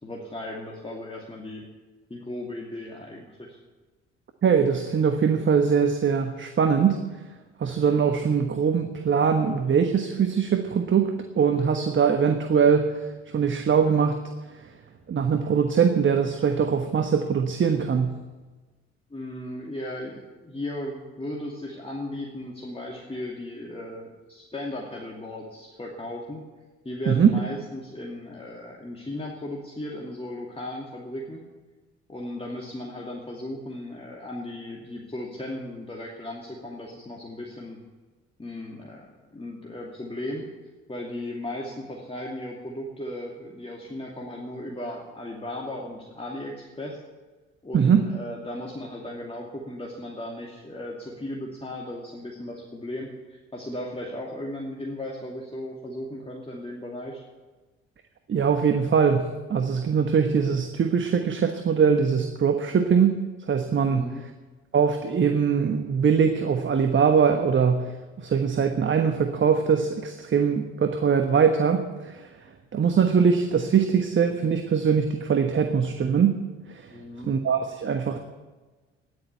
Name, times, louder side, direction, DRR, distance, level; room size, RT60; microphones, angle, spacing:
voice 1, 0.0-1.7 2.1-3.6 19.1-26.5 26.8-31.5 32.1-37.8 38.4-40.5 40.9-47.0 47.6-57.2 63.9-64.2 76.9-77.3, left 1 dB, 15° left, -2 dB, 2.6 m, -36 dB
voice 2, 4.4-7.0 7.6-13.0 13.3-14.2 14.5-14.6 15.1-18.2 27.1-27.3 47.7-48.0 58.3-63.2 63.5-64.1 64.7-72.3 72.7-76.4 76.7-76.9 77.2-78.2, right 6 dB, 35° right, 6 dB, 1.3 m, -22 dB
13.5 x 11.0 x 8.3 m, 1.3 s
figure-of-eight pair, 45°, 33 cm